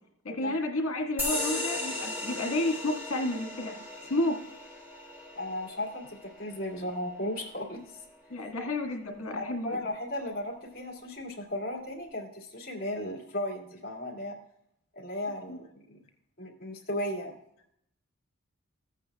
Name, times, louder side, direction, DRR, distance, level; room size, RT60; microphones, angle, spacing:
voice 1, 0.2-3.8 4.1-4.4 8.3-9.9 15.5-15.6, left 1 dB, 75° left, 4 dB, 1.7 m, -31 dB
sound 1, 1.2-8.2, left 2 dB, 10° right, 1.6 m, -37 dB
voice 2, 5.3-8.0 9.4-14.4 15.0-16.0 16.4-17.3, left 1 dB, 40° left, -1 dB, 2.2 m, -35 dB
14.5 x 8.9 x 2.3 m, 0.71 s
head